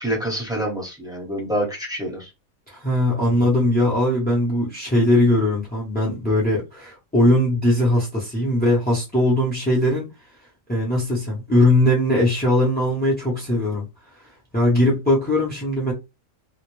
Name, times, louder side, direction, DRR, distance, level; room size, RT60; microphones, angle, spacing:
voice 1, 0.0-2.3, equal, 5° right, 0.8 m, -27 dB
voice 2, 2.7-10.1 10.7-13.9 14.2-14.3 14.5-15.9, left 1 dB, 15° left, 0.4 m, -20 dB
2.3 x 2.1 x 3.0 m
omnidirectional pair, 1.4 m